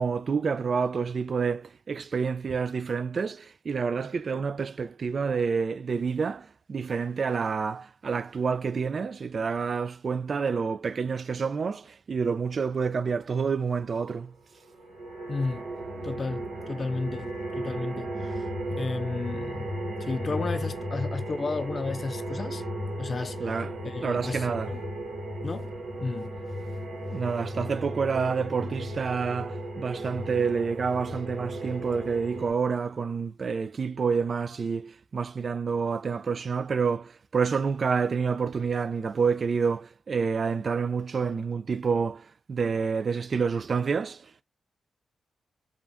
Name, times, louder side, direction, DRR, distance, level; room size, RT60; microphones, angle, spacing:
voice 1, 0.0-6.4 6.7-11.8 12.1-14.3 23.4-23.7 24.0-24.7 27.1-42.2 42.5-44.2, right 5 dB, 55° right, 0.3 m, -28 dB
sound 1, 14.6-32.5, right 1 dB, 85° right, 1.0 m, -35 dB
voice 2, 15.3-15.6 16.0-18.5 18.8-19.7 20.0-22.6 23.0-24.8 25.4-25.7 26.0-26.3, left 3 dB, 45° left, 0.3 m, -33 dB
2.5 x 2.2 x 3.4 m
cardioid pair, 70°, 0 cm